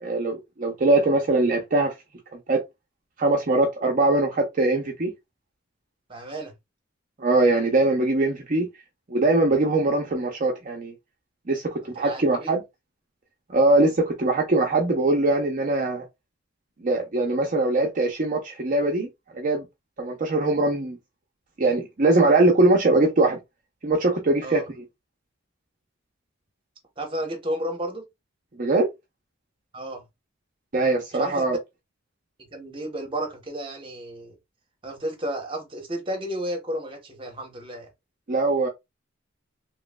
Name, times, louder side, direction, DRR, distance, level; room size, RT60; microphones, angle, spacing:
voice 1, 0.0-1.9 2.5-2.6 3.2-5.1 7.2-8.7 9.1-10.9 11.5-12.6 13.5-16.0 16.8-19.1 19.3-19.6 20.0-21.0 21.6-23.4 23.8-24.6 28.6-28.9 30.7-31.6 38.3-38.7, right 2 dB, 40° right, 0.6 m, -21 dB
voice 2, 6.1-6.5 11.8-12.5 13.5-13.6 24.4-24.6 27.0-28.1 29.7-30.1 31.1-31.4 32.5-34.4 34.8-37.9, right 1 dB, 25° right, 1.0 m, -32 dB
3.0 x 3.0 x 2.2 m
head